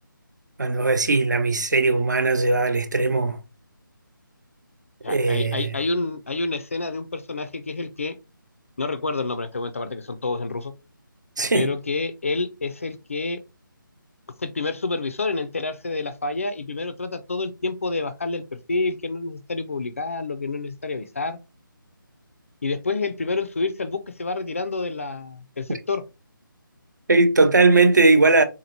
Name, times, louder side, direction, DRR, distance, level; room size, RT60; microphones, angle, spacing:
voice 1, 0.6-3.4 5.1-5.7 11.4-11.7 27.1-28.4, right 3 dB, 55° right, 0.6 m, -19 dB
voice 2, 5.0-8.2 8.8-10.7 11.5-13.4 14.4-18.4 18.7-21.4 22.6-26.0, left 3 dB, 40° left, 0.4 m, -28 dB
3.7 x 2.9 x 2.7 m
figure-of-eight pair, 155°, 12 cm